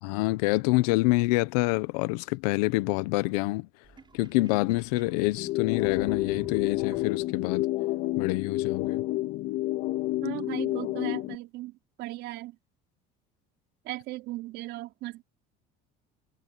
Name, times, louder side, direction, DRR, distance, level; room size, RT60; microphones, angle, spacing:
voice 1, 0.0-3.7 4.1-7.7 8.2-9.0, left 21 dB, 85° left, 1.1 m, -26 dB
Sink (filling or washing), 3.8-7.6, right 5 dB, 25° right, 5.9 m, -50 dB
sound 1, 5.4-11.4, left 17 dB, 70° left, 2.2 m, -29 dB
voice 2, 10.2-12.6 13.8-15.2, right 18 dB, 70° right, 4.6 m, -37 dB
supercardioid pair, 105°, 19 cm